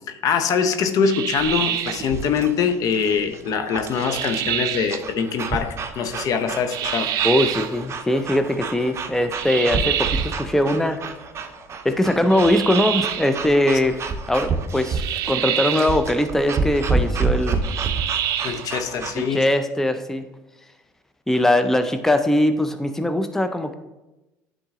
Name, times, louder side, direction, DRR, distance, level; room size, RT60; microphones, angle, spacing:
voice 1, 0.1-7.1 18.4-19.4, left 6 dB, 55° left, 8 dB, 0.7 m, -23 dB
sound 1, 1.0-2.1 4.0-5.0 6.7-7.7 9.3-10.4 12.3-13.3 14.9-16.0 17.6-18.7, right 11 dB, 60° right, 0.5 m, -26 dB
sound 2, 1.3-19.3, right 4 dB, 40° right, 0.8 m, -29 dB
voice 2, 7.2-11.0 11.8-14.0 14.3-15.0 15.3-17.6 19.1-20.3 21.3-23.7, left 1 dB, 5° left, 8 dB, 0.5 m, -21 dB
9.6 x 3.9 x 3.7 m, 1.0 s
supercardioid pair, 85°, 7 cm